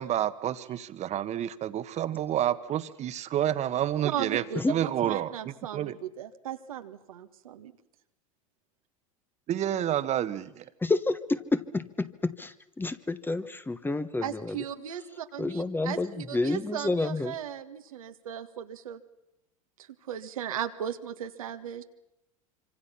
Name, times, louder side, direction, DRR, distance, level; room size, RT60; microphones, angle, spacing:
voice 1, 0.0-4.4 4.7-6.0 9.5-10.7, right 11 dB, 40° right, 12 dB, 1.4 m, -29 dB
voice 2, 4.0-7.7 14.2-19.0 20.1-21.8, right 10 dB, 80° right, 7 dB, 1.6 m, -37 dB
voice 3, 10.8-14.6 15.4-17.3, left 2 dB, 10° left, 11 dB, 1.2 m, -29 dB
25.5 x 25.5 x 5.8 m, 0.88 s
hypercardioid pair, 85°, 18 cm